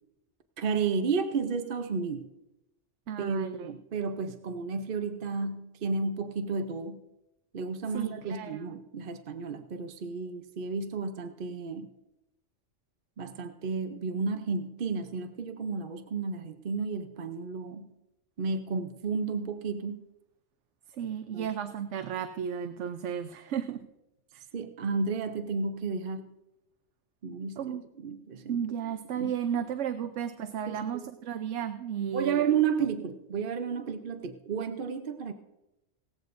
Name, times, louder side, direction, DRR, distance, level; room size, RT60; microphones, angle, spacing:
voice 1, 0.6-2.3 3.2-7.0 7.5-11.9 13.2-17.9 18.4-20.0 21.3-21.5 24.5-26.3 27.2-28.6 29.2-29.3 30.7-31.0 32.1-35.3, right 5 dB, 50° right, 7 dB, 0.9 m, -32 dB
voice 2, 3.1-3.7 7.9-8.6 20.9-23.9 24.3-24.4 27.6-27.8 28.5-32.4, right 8 dB, 80° right, 10 dB, 1.0 m, -34 dB
18.0 x 14.5 x 2.6 m, 0.91 s
omnidirectional pair, 1.2 m